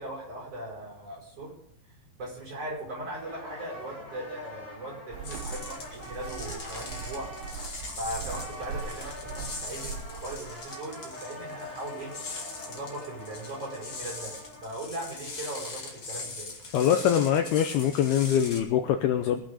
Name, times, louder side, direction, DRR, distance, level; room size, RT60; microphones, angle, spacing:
voice 1, 0.0-1.6 2.2-7.3 8.0-12.1 12.7-14.3 14.6-16.5, right 1 dB, 30° right, -3 dB, 6.2 m, -39 dB
sound 1, 3.1-14.9, left 1 dB, 5° left, 3.4 m, -44 dB
sound 2, 5.1-10.5, right 5 dB, 80° right, 3.4 m, -40 dB
sound 3, 5.2-18.6, left 3 dB, 40° left, 2.3 m, -41 dB
voice 2, 16.7-19.4, left 9 dB, 85° left, 6 dB, 2.3 m, -24 dB
20.5 x 9.0 x 5.0 m, 0.72 s
omnidirectional pair, 5.4 m